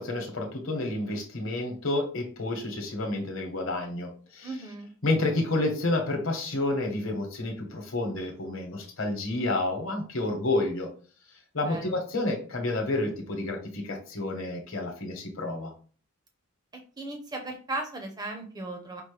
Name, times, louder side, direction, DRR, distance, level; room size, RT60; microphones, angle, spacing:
voice 1, 0.0-4.5 5.0-10.9 11.5-15.7, left 2 dB, 65° left, 3 dB, 1.0 m, -30 dB
voice 2, 4.4-4.9 11.6-11.9 17.0-19.0, right 2 dB, 20° right, 3 dB, 0.6 m, -36 dB
5.3 x 2.1 x 3.3 m, 0.40 s
head